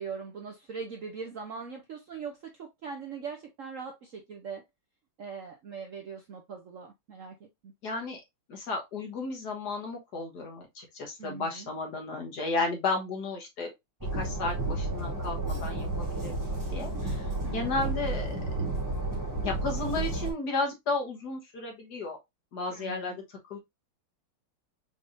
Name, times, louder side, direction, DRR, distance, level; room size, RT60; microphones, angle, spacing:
voice 1, 0.0-4.6 5.2-7.7 11.2-11.7 17.4-17.9 22.7-23.2, right 5 dB, 60° right, 0.8 m, -41 dB
voice 2, 7.8-8.2 8.5-13.7 14.1-18.3 19.4-22.2 22.5-23.6, left 3 dB, 55° left, 1.8 m, -33 dB
Train, 14.0-20.3, right 2 dB, 15° right, 0.9 m, -32 dB
5.3 x 3.4 x 2.5 m
omnidirectional pair, 2.1 m